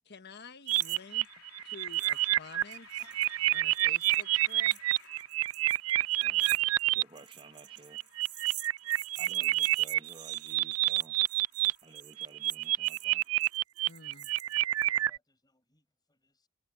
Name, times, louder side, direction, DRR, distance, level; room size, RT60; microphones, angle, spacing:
voice 1, 0.0-1.3 1.6-3.0 3.5-4.8 13.9-14.3, left 4 dB, 50° left, 1.4 m, -50 dB
sound 1, 0.7-1.0 1.2-1.3 1.9-2.2 2.5-14.9, right 14 dB, 55° right, 3.1 m, -48 dB
sound 2, 0.7-7.0 7.7-11.7 12.0-15.2, right 16 dB, 75° right, 0.4 m, -28 dB
sound 3, 0.8-13.6, left 7 dB, 85° left, 3.6 m, -60 dB
voice 2, 6.2-8.1 9.2-11.2 11.8-13.4, right 2 dB, 25° right, 1.2 m, -54 dB
voice 3, 14.8-16.5, left 3 dB, 20° left, 6.4 m, -62 dB
head